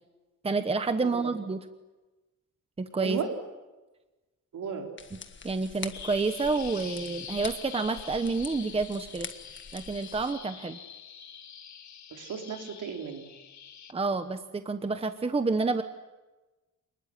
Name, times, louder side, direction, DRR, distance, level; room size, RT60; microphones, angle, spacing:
voice 1, 0.4-1.6 2.8-3.2 5.4-9.3 9.7-10.8 13.9-15.8, right 3 dB, 20° right, 9 dB, 1.0 m, -29 dB
voice 2, 4.5-4.9 12.1-13.3, right 6 dB, 65° right, 3 dB, 4.2 m, -35 dB
sound 1, 5.0-10.3, left 5 dB, 35° left, 1.7 m, -45 dB
Bird vocalization bird call bird song, 5.9-13.9, left 8 dB, 60° left, 1.8 m, -45 dB
28.0 x 20.5 x 10.0 m, 1.2 s
wide cardioid pair, 175°, 33 cm